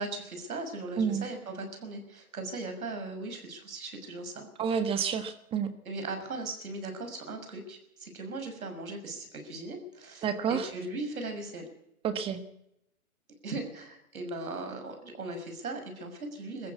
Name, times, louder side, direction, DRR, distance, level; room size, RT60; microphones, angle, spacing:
voice 1, 0.0-4.5 4.9-5.0 5.8-11.7 13.4-16.7, right 2 dB, 75° right, 6 dB, 6.4 m, -38 dB
voice 2, 4.6-5.7 10.2-10.7 12.0-12.4, right 7 dB, 15° right, 10 dB, 1.4 m, -29 dB
21.5 x 14.5 x 8.3 m, 0.80 s
hypercardioid pair, 145°, 43 cm